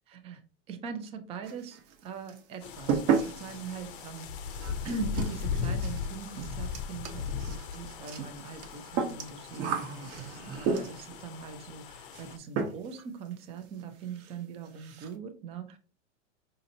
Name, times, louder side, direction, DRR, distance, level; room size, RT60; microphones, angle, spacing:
voice 1, 0.1-0.4 0.7-15.8, right 5 dB, 15° right, 8 dB, 0.4 m, -41 dB
sound 1, 1.4-2.0 2.3-11.2 12.1-12.3 12.6-13.0 13.3-13.4 13.8-13.9 14.2-14.3 14.7-15.1, right 6 dB, 45° right, 0.9 m, -33 dB
sound 2, 2.6-12.4, left 6 dB, 45° left, 0.6 m, -38 dB
5.1 x 2.8 x 2.7 m, 0.37 s
hypercardioid pair, 135°, 36 cm